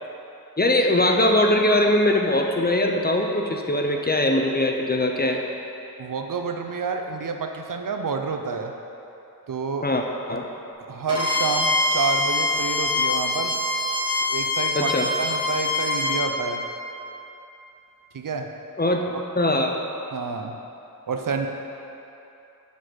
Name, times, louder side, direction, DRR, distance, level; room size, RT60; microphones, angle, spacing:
voice 1, 0.6-5.4 9.8-10.4 14.7-15.1 18.8-19.0 19.4-19.8, left 1 dB, 25° left, 2 dB, 0.6 m, -21 dB
voice 2, 6.0-8.7 9.5-9.9 10.9-13.5 14.3-14.9 15.2-16.6 18.1-18.5 19.1-19.2 20.1-20.6 21.1-21.5, right 5 dB, 60° right, 4 dB, 0.6 m, -28 dB
Bowed string instrument, 11.1-16.3, left 2 dB, 15° right, 1.7 m, -24 dB
7.2 x 4.1 x 6.2 m, 2.9 s
wide cardioid pair, 80°, 36 cm